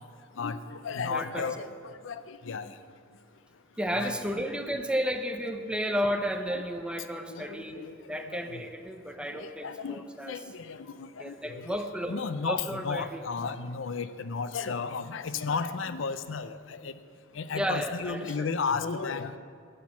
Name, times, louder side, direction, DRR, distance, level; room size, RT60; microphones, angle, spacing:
voice 1, 0.4-2.7 3.9-4.1 7.3-7.9 8.3-8.6 9.4-11.8 12.1-16.9 17.4-19.4, left 5 dB, 75° left, 12 dB, 0.5 m, -34 dB
voice 2, 1.1-1.7 3.8-10.4 11.2-13.2 17.5-18.5, equal, 5° right, 6 dB, 0.6 m, -33 dB
11.5 x 7.9 x 7.3 m, 2.2 s
head